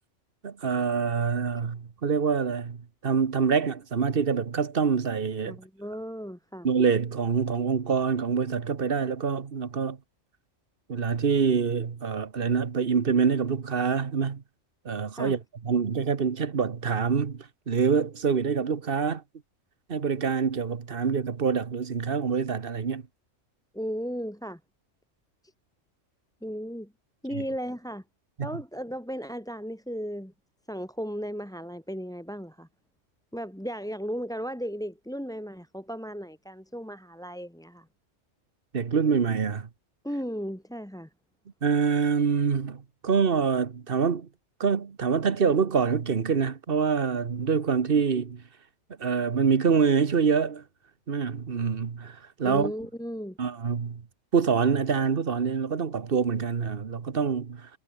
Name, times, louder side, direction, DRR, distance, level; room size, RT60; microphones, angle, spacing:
voice 1, 0.4-5.6 6.6-10.0 10.9-14.4 14.8-19.2 19.9-23.0 27.3-27.4 28.4-28.5 38.7-39.7 41.6-44.3 44.6-48.4 49.0-50.6 51.1-52.7 53.4-54.0 54.3-57.7, right 6 dB, 50° right, 1.4 m, -26 dB
voice 2, 5.5-6.7 15.2-15.4 23.7-24.6 26.4-26.9 27.2-28.0 28.4-30.3 30.7-32.7 33.3-37.9 40.0-41.1 52.4-53.4, equal, 5° left, 1.3 m, -35 dB
omnidirectional pair, 1.3 m